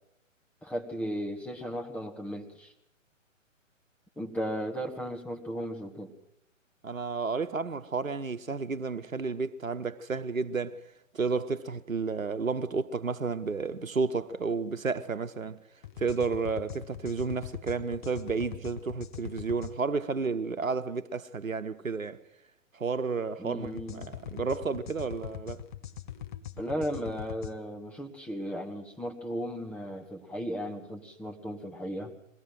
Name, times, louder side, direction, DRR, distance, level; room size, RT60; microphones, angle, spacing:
voice 1, 0.6-2.7 4.2-6.1 23.4-24.1 26.6-32.1, equal, 5° left, 1.4 m, -36 dB
voice 2, 6.8-10.8 11.1-15.6 16.0-22.2 22.7-25.6, right 4 dB, 85° right, 1.1 m, -31 dB
sound 1, 15.8-19.7 23.6-27.5, left 11 dB, 40° left, 1.1 m, -42 dB
22.5 x 16.5 x 7.7 m
figure-of-eight pair, 130°, 39 cm